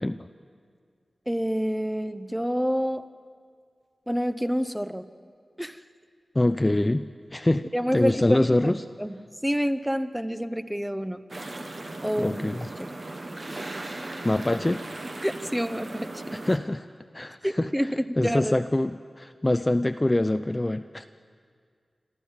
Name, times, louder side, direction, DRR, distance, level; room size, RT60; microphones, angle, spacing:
voice 1, 1.3-3.0 4.1-5.0 5.6-5.8 7.7-8.4 9.0-11.2 12.0-12.4 12.8-12.9 13.5-13.6 15.2-16.4 17.4-18.6, equal, 5° right, 11 dB, 0.7 m, -28 dB
voice 2, 6.4-7.6 7.9-8.8 12.2-12.7 14.2-14.8 16.4-16.9 17.1-17.7 18.2-21.1, left 1 dB, 20° left, 10 dB, 0.4 m, -24 dB
sound 1, 11.3-16.6, right 2 dB, 45° right, 1.4 m, -37 dB
27.0 x 13.5 x 7.3 m, 2.1 s
wide cardioid pair, 95°, 0 cm